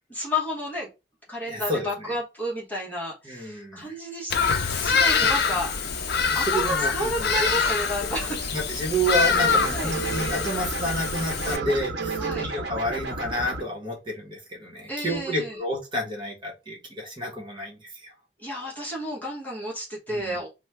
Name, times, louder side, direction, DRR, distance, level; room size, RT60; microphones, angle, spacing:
voice 1, 0.1-0.9 1.3-5.7 6.3-8.4 9.7-9.9 12.2-12.5 14.9-15.6 18.4-20.5, left 1 dB, 10° left, -4 dB, 1.0 m, -31 dB
voice 2, 1.4-2.1 3.2-4.0 6.4-7.6 8.5-18.1 20.1-20.4, equal, 30° right, 0 dB, 1.1 m, -30 dB
Bird vocalization bird call bird song, 4.3-11.6, left 5 dB, 65° left, 0.5 m, -25 dB
sound 1, 8.3-12.5, right 7 dB, 70° right, 0.4 m, -34 dB
sound 2, 9.2-13.6, right 2 dB, 85° right, 0.8 m, -33 dB
3.1 x 2.1 x 3.3 m, 0.25 s
head